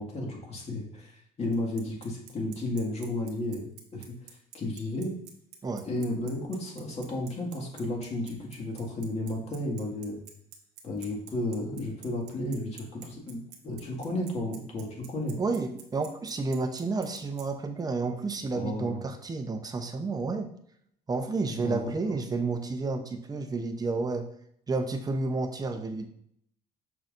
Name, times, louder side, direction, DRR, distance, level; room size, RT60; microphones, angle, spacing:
voice 1, 0.0-4.1 4.5-5.1 5.8-10.2 10.8-15.4 18.5-19.0 21.5-22.1, left 1 dB, 40° left, -1 dB, 2.0 m, -33 dB
Bicycle, 1.5-17.4, right 10 dB, 85° right, 1.1 m, -48 dB
voice 2, 15.4-20.5 21.1-24.2 24.7-26.1, right 3 dB, 20° right, 6 dB, 0.8 m, -31 dB
6.3 x 5.7 x 2.6 m, 0.68 s
cardioid pair, 110°, 17 cm